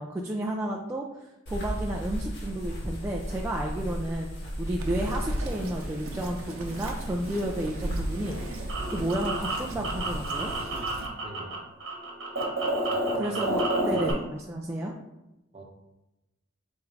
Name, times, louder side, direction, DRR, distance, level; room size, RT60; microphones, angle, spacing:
voice 1, 0.0-4.3 4.6-10.5 13.2-14.9, right 1 dB, 10° right, -2 dB, 0.3 m, -32 dB
sound 1, 1.5-10.6, equal, 55° left, 1.3 m, -37 dB
Bird vocalization bird call bird song, 4.8-11.1, right 1 dB, 85° right, 0.7 m, -36 dB
sound 2, 8.2-11.6 11.8-14.1, right 1 dB, 65° right, 1.1 m, -30 dB
voice 2, 11.2-11.5 12.9-13.5 13.9-14.2 15.5-15.6, right 2 dB, 30° right, -1 dB, 0.9 m, -42 dB
3.7 x 3.1 x 4.6 m, 0.95 s
head